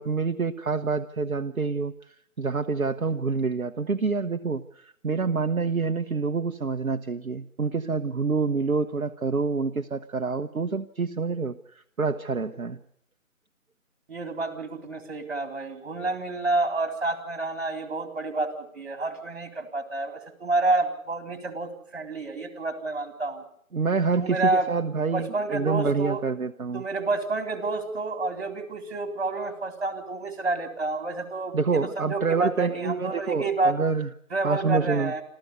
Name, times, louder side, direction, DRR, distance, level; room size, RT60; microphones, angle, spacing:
voice 1, 0.0-12.8 23.7-26.8 31.5-34.1 34.4-35.1, right 4 dB, 75° right, 7 dB, 1.1 m, -27 dB
voice 2, 14.1-23.4 24.2-24.7 25.1-26.2 26.7-33.8 34.3-35.2, right 3 dB, 45° right, 7 dB, 3.9 m, -29 dB
27.5 x 14.5 x 8.1 m, 0.69 s
figure-of-eight pair, 160°, 42 cm